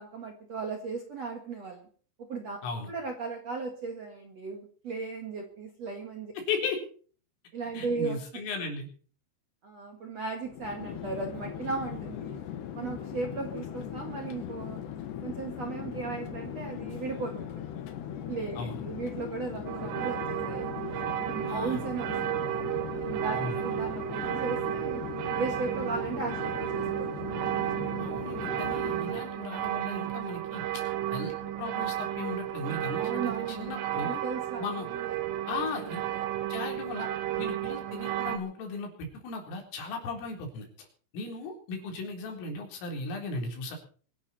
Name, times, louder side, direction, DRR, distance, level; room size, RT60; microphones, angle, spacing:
voice 1, 0.0-1.9 2.3-2.6 2.9-6.3 7.5-8.4 9.6-12.4 12.7-14.8 15.2-17.7 18.3-20.7 21.2-22.7 23.1-25.0 25.4-27.1 33.0-33.7 34.0-35.2 35.5-36.2, right 4 dB, 50° right, 3 dB, 2.0 m, -36 dB
voice 2, 6.4-6.8 7.7-8.9 18.6-18.8 21.4-21.8 23.3-23.6 28.0-30.8 31.1-34.2 34.6-34.9 35.5-36.0 36.5-37.1 37.4-40.9 41.1-43.8, left 3 dB, 85° left, 1 dB, 6.5 m, -36 dB
Chatter / Fixed-wing aircraft airplane, 10.4-29.4, left 10 dB, 65° left, 3.4 m, -39 dB
sound 1, 19.7-38.4, right 13 dB, 80° right, 3.6 m, -33 dB
24.5 x 11.0 x 4.3 m, 0.43 s
omnidirectional pair, 5.7 m